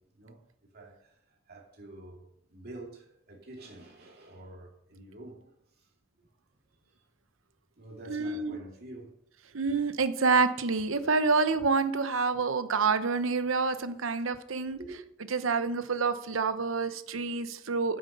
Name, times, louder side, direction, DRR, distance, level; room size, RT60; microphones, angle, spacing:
voice 1, 0.7-1.1 1.5-5.5 5.8-5.9 7.8-9.1 12.4-12.5 14.8-15.0, right 2 dB, 50° right, 2.7 m, -47 dB
voice 2, 8.1-8.6 9.5-14.8 15.3-18.0, right 4 dB, 75° right, 0.8 m, -27 dB
9.4 x 7.7 x 5.5 m
head